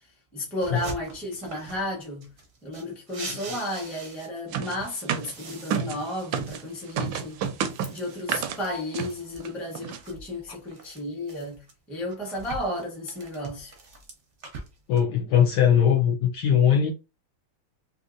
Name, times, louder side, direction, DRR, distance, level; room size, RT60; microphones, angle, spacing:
voice 1, 0.3-2.3 2.6-7.4 7.9-13.8, left 1 dB, ahead, 0.5 m, -33 dB
sound 1, 0.6-1.9 2.2-4.6 4.9-9.4 9.9-11.7 12.1-15.0, right 3 dB, 60° right, 0.8 m, -43 dB
sound 2, 4.5-6.6 7.0-8.6 8.9-9.1 9.4-9.5 9.7-10.0, right 7 dB, 75° right, 1.2 m, -30 dB
voice 2, 14.9-16.9, left 8 dB, 70° left, 1.1 m, -20 dB
3.5 x 2.8 x 2.5 m
omnidirectional pair, 2.3 m